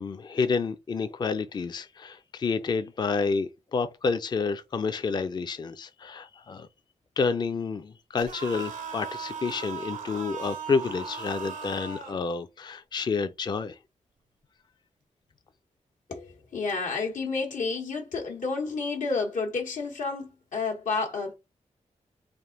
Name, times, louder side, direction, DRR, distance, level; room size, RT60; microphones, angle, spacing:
voice 1, 0.0-6.7 7.2-13.8, left 5 dB, 35° left, 0.4 m, -29 dB
sound 1, 8.2-12.2, right 6 dB, 85° right, 0.7 m, -38 dB
voice 2, 16.1-21.3, left 4 dB, 85° left, 1.1 m, -30 dB
3.4 x 2.5 x 3.7 m
wide cardioid pair, 105°, 13 cm